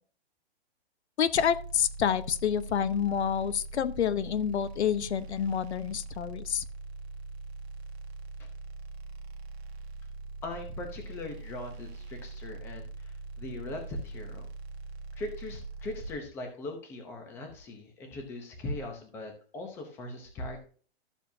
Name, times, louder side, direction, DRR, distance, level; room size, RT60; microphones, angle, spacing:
voice 1, 1.2-6.6, left 8 dB, 90° left, 14 dB, 0.9 m, -28 dB
sound 1, 1.3-16.1, right 3 dB, 75° right, 1.2 m, -42 dB
voice 2, 10.4-14.5 15.2-20.7, left 2 dB, 5° left, 4 dB, 0.8 m, -40 dB
13.5 x 7.2 x 2.7 m, 0.43 s
hypercardioid pair, 175°, 32 cm